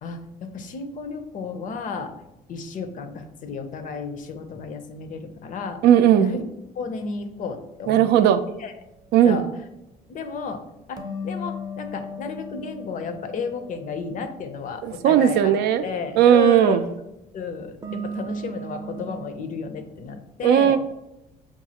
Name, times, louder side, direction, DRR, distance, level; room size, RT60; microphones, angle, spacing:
voice 1, 0.0-2.1 2.5-5.8 6.2-6.4 6.7-8.2 8.6-8.7 9.2-9.5 10.1-10.6 10.9-15.5 15.8-16.9 17.3-20.8, left 5 dB, 50° left, 8 dB, 0.6 m, -32 dB
voice 2, 5.8-6.3 7.9-8.4 9.1-9.4 14.8-15.8 16.2-16.8 20.4-20.8, right 10 dB, 75° right, 10 dB, 0.4 m, -16 dB
sound 1, 11.0-15.1 17.8-19.3, equal, 20° right, 0.6 m, -36 dB
5.9 x 2.4 x 2.8 m, 0.90 s
cardioid pair, 110°, 17 cm